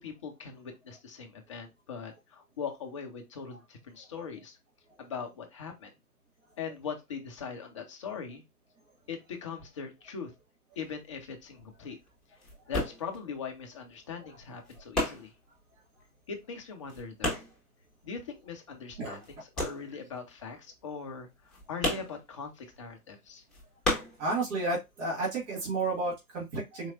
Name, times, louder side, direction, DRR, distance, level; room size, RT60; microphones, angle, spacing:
voice 1, 0.0-4.6 5.0-5.9 6.6-8.4 9.1-10.3 10.8-12.0 12.7-15.3 16.3-17.4 18.0-23.4, left 6 dB, 20° left, 4 dB, 0.4 m, -41 dB
sound 1, 10.7-18.7 19.0-24.9 25.1-26.2, left 1 dB, ahead, 1.3 m, -35 dB
voice 2, 24.2-26.9, right 3 dB, 50° right, -4 dB, 1.8 m, -31 dB
4.4 x 2.9 x 2.3 m, 0.22 s
hypercardioid pair, 125°, 47 cm